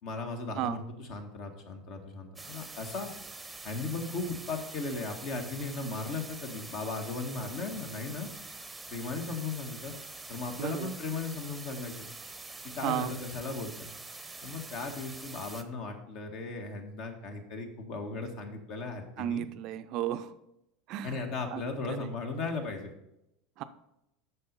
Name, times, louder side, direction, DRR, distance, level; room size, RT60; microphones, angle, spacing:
voice 1, 0.0-3.1 3.6-8.3 8.9-9.9 10.3-12.1 12.7-13.9 14.4-19.5 21.0-22.9, left 3 dB, 50° left, 4 dB, 1.6 m, -37 dB
sound 1, 2.4-15.6, right 3 dB, 10° right, 0.8 m, -45 dB
voice 2, 10.6-10.9 12.8-13.1 19.2-20.3 20.9-21.2 21.5-22.1 23.6-23.7, right 11 dB, 50° right, 11 dB, 0.5 m, -34 dB
8.6 x 6.3 x 5.4 m, 0.85 s
figure-of-eight pair, 75°, 0 cm